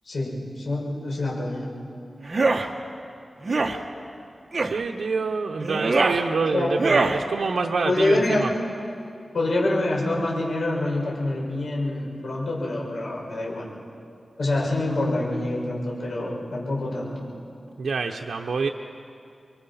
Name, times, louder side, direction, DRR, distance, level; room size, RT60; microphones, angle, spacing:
voice 1, 0.0-1.7 6.5-6.7 7.8-8.4 9.3-13.6 14.4-17.3, left 2 dB, 70° left, -3 dB, 6.4 m, -26 dB
sound 1, 2.2-2.7 3.4-3.8 4.5-4.8 5.6-6.2 6.8-7.2, right 3 dB, 45° right, 1.5 m, -22 dB
voice 2, 4.6-8.5 17.8-18.7, right 4 dB, 80° right, 1 dB, 0.9 m, -26 dB
29.5 x 23.5 x 5.8 m, 2.5 s
wide cardioid pair, 95°, 0 cm